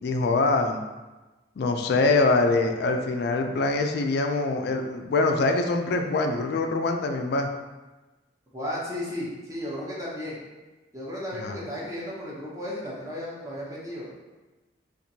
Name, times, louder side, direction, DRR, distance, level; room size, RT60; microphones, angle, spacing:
voice 1, 0.0-0.8 1.6-7.5 11.4-11.6, left 3 dB, 60° left, 5 dB, 0.3 m, -24 dB
voice 2, 8.5-10.4 10.9-14.1, left 1 dB, 15° right, -6 dB, 0.7 m, -34 dB
4.3 x 2.5 x 2.7 m, 1.2 s
head